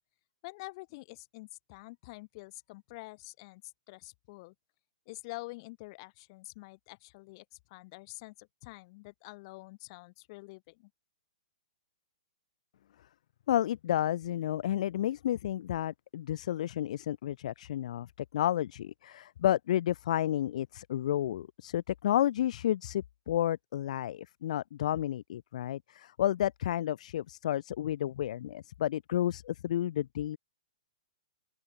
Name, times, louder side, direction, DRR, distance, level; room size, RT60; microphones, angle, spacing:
voice 1, 0.4-3.6 3.9-4.5 5.1-10.9, left 24 dB, 40° left, 2.7 m, -47 dB
voice 2, 13.5-18.1 18.3-30.4, left 12 dB, 60° left, 0.5 m, -31 dB
open air
hypercardioid pair, 130°, 4 cm